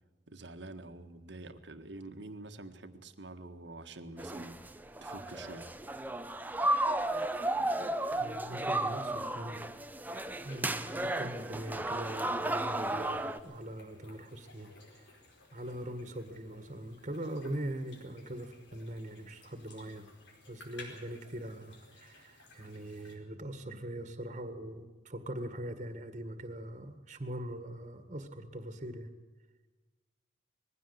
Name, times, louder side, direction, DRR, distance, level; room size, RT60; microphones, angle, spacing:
voice 1, 0.3-4.6 5.0-5.7, right 2 dB, 70° right, 8 dB, 1.6 m, -46 dB
sound 1, 4.2-13.4, right 1 dB, 10° right, 0.8 m, -34 dB
voice 2, 8.2-9.6 10.4-14.7 15.1-15.2 15.5-20.1 20.5-29.1, right 1 dB, 40° right, 9 dB, 1.8 m, -42 dB
sound 2, 10.0-23.2, left 2 dB, 75° left, 4.8 m, -57 dB
20.5 x 16.0 x 8.1 m, 1.2 s
head